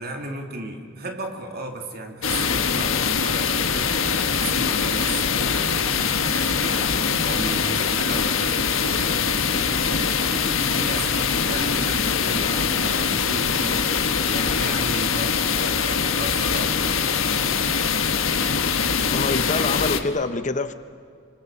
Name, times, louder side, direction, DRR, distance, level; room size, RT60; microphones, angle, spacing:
voice 1, 0.0-17.0, right 2 dB, 50° right, 3 dB, 2.9 m, -35 dB
sound 1, 2.2-20.0, left 6 dB, 70° left, 1.5 m, -23 dB
voice 2, 19.1-20.7, left 3 dB, 35° left, 11 dB, 0.9 m, -25 dB
27.0 x 25.0 x 7.3 m, 2.2 s
head